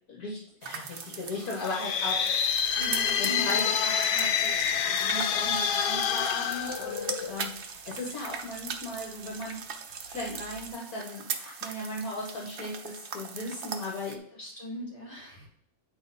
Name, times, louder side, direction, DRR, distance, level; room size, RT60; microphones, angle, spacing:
voice 1, 0.1-2.5 3.2-4.6 4.9-9.6 10.1-14.2, left 2 dB, 65° left, -2 dB, 1.9 m, -37 dB
sound 1, 0.6-14.2, right 6 dB, 55° right, 0.6 m, -40 dB
sound 2, 1.5-7.5, left 7 dB, 90° left, 1.3 m, -27 dB
sound 3, 2.4-10.7, right 5 dB, 80° right, 1.5 m, -49 dB
voice 2, 2.8-3.5 14.3-15.5, equal, 20° left, -5 dB, 3.0 m, -39 dB
9.0 x 4.8 x 4.2 m, 0.64 s
omnidirectional pair, 1.7 m